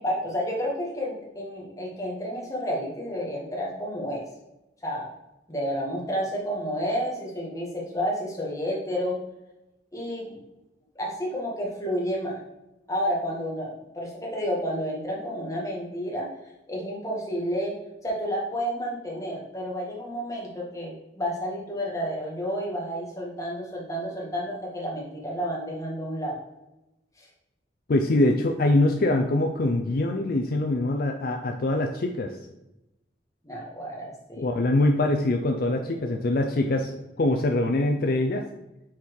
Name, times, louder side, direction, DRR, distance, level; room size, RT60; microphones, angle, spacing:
voice 1, 0.0-4.2 4.8-5.1 5.5-9.2 9.9-10.4 10.9-12.4 12.9-16.3 16.7-17.7 18.0-26.4 33.4-34.5, equal, 20° left, -3 dB, 1.7 m, -30 dB
voice 2, 27.9-32.3 34.4-38.4, left 2 dB, 55° left, 4 dB, 0.5 m, -24 dB
5.8 x 4.4 x 4.7 m, 0.95 s
head